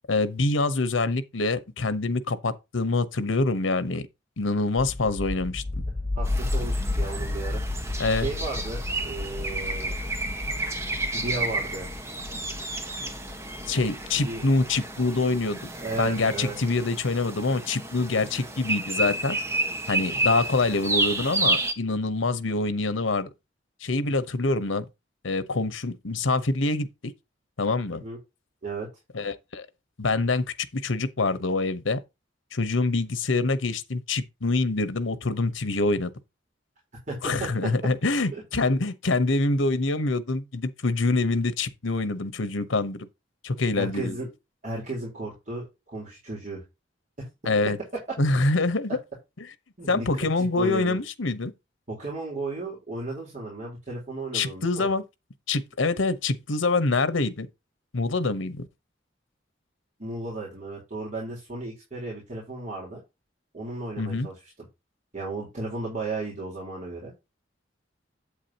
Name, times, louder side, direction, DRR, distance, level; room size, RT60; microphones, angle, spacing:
voice 1, 0.1-4.0 4.4-5.6 8.0-8.3 13.7-15.6 16.0-19.4 19.9-23.3 23.8-24.9 25.2-27.1 27.6-28.0 29.1-29.7 30.0-30.4 30.7-32.0 32.5-36.1 37.2-43.1 43.4-44.2 47.5-47.8 48.2-49.0 49.9-51.5 54.3-55.0 55.5-57.5 57.9-58.7 64.0-64.3, left 3 dB, 90° left, 1.0 m, -25 dB
sound 1, 4.8-15.5, left 2 dB, 25° left, 1.8 m, -32 dB
sound 2, 6.2-21.7, right 2 dB, 15° right, 1.3 m, -31 dB
voice 2, 6.2-7.6 8.1-10.0 11.1-11.9 14.2-14.4 15.7-16.6 28.0-28.2 28.6-28.9 37.1-37.7 38.3-38.4 43.8-44.3 44.6-46.6 47.2-47.3 49.8-51.0 51.9-54.9 60.0-63.0 63.5-64.4 65.1-67.1, right 2 dB, 40° right, 4.0 m, -34 dB
8.5 x 8.3 x 2.9 m
head